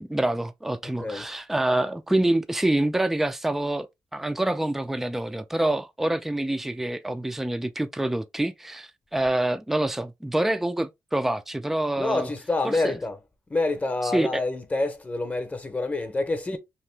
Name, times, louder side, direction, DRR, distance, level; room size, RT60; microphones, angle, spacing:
voice 1, 0.0-12.3 12.6-13.0 14.0-14.4, right 1 dB, 5° right, 0.3 m, -26 dB
voice 2, 12.0-13.2 13.5-16.6, left 2 dB, 25° left, 0.7 m, -27 dB
2.9 x 2.5 x 3.2 m
cardioid pair, 100°, 6 cm